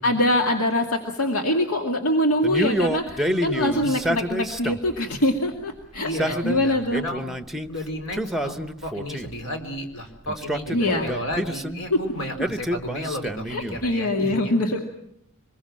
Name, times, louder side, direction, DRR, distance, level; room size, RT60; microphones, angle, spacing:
voice 1, 0.0-7.1 10.7-11.1 11.9-12.0 13.5-14.8, left 1 dB, 90° left, 2 dB, 2.3 m, -23 dB
Male speech man speaking, 2.4-5.0 5.9-7.7 8.1-9.4 10.3-11.8 12.4-13.9, equal, ahead, 0.9 m, -28 dB
voice 2, 3.2-4.1 6.0-7.2 7.7-14.5, left 1 dB, 70° left, 5 dB, 4.6 m, -33 dB
25.5 x 21.5 x 7.4 m, 0.74 s
head